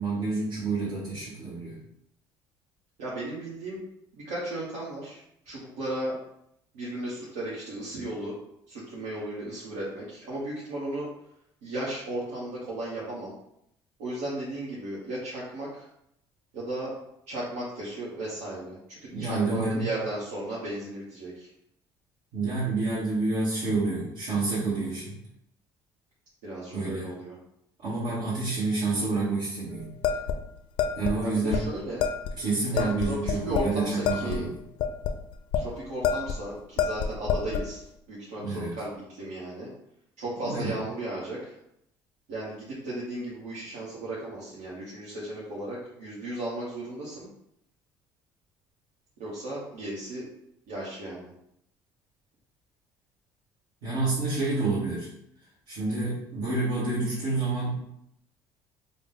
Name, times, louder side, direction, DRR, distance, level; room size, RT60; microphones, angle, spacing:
voice 1, 0.0-1.8 19.1-19.9 22.3-25.2 26.7-27.1 27.8-29.9 31.0-31.7 32.4-34.5 38.4-38.7 40.5-40.7 53.8-55.1 55.7-57.8, right 3 dB, 70° right, -8 dB, 1.2 m, -28 dB
voice 2, 3.0-3.8 4.1-6.2 6.7-8.3 8.7-11.1 11.6-13.3 14.0-15.9 16.5-16.9 17.3-21.5 24.8-24.9 26.4-27.4 31.2-32.1 32.7-33.2 33.4-34.4 35.5-39.7 40.2-41.6 42.3-47.3 49.2-50.2 50.7-51.3, right 1 dB, 90° right, -7 dB, 0.9 m, -35 dB
Bright Bowl, 30.0-31.2 31.5-31.6 32.0-32.3 32.8-33.7 34.0-35.7 36.0-36.4 36.8-37.7, left 7 dB, 70° left, 0.4 m, -28 dB
3.8 x 2.0 x 3.6 m, 0.76 s
supercardioid pair, 85°, 9 cm